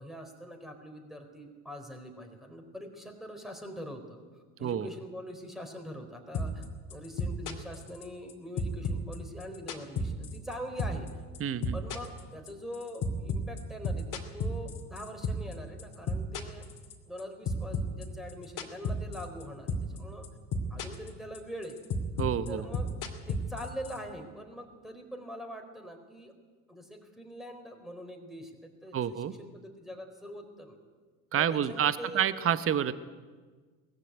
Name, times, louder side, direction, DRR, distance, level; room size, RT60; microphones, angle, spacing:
voice 1, 0.0-11.2 11.7-16.7 17.0-20.3 20.7-21.8 22.5-22.9 23.3-26.3 26.7-30.8 31.3-32.3, equal, ahead, 4 dB, 4.2 m, -43 dB
sound 1, 6.3-6.7 6.9-8.3 8.6-10.5 10.8-11.1 11.3-15.5 15.8-17.2 17.5-19.4 19.7-20.0 20.2-21.1 21.3-24.0, left 2 dB, 40° left, 2.7 m, -32 dB
voice 2, 11.4-11.8 22.2-22.6 28.9-29.3 31.3-32.9, right 9 dB, 30° right, 14 dB, 1.0 m, -28 dB
19.5 x 14.5 x 9.8 m, 1.5 s
hypercardioid pair, 70°, 47 cm